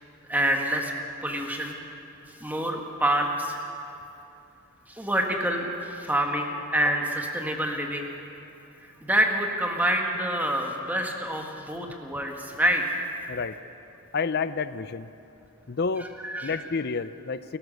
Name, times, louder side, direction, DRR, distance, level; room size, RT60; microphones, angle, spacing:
voice 1, 0.3-0.9 1.2-1.8 2.4-3.6 4.9-8.1 9.0-13.0 16.0-16.6, right 1 dB, 10° right, 1 dB, 1.8 m, -27 dB
voice 2, 14.1-15.1 15.7-16.1 16.4-17.6, left 5 dB, 50° left, 14 dB, 0.6 m, -29 dB
28.5 x 14.5 x 6.6 m, 2.8 s
head